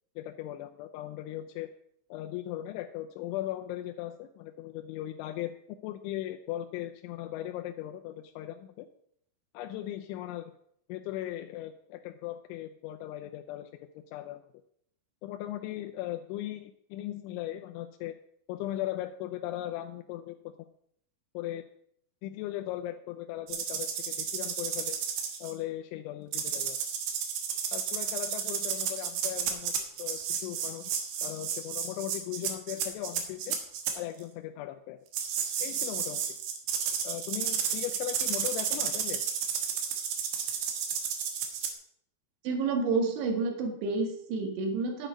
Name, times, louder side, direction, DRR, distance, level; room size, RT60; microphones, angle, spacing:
voice 1, 0.2-1.7 2.1-5.5 5.8-8.9 9.5-10.5 10.9-13.7 14.0-14.4 15.2-18.1 18.5-20.5 21.3-21.6 22.2-25.0 25.4-26.8 27.7-29.7 30.0-33.6 34.0-35.0 35.6-36.2 37.0-39.2, left 13 dB, 90° left, 5 dB, 3.0 m, -38 dB
sound 1, 23.5-25.5 26.3-33.9 35.1-41.7, right 7 dB, 65° right, 2.8 m, -32 dB
voice 2, 42.4-45.1, right 4 dB, 80° right, 4 dB, 4.0 m, -29 dB
10.0 x 8.8 x 5.1 m, 0.69 s
omnidirectional pair, 5.3 m